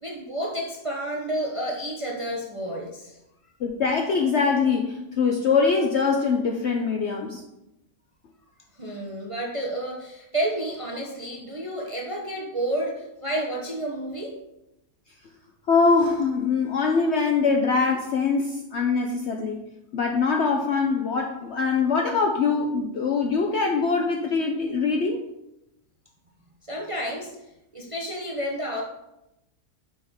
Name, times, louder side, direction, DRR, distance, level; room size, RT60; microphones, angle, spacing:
voice 1, 0.0-3.2 8.7-14.4 26.6-27.4 27.7-28.8, right 1 dB, 35° right, -1 dB, 0.5 m, -30 dB
voice 2, 3.6-7.4 15.7-19.6 19.9-25.2, left 4 dB, 65° left, 2 dB, 0.7 m, -23 dB
6.3 x 5.5 x 3.5 m, 0.89 s
omnidirectional pair, 1.7 m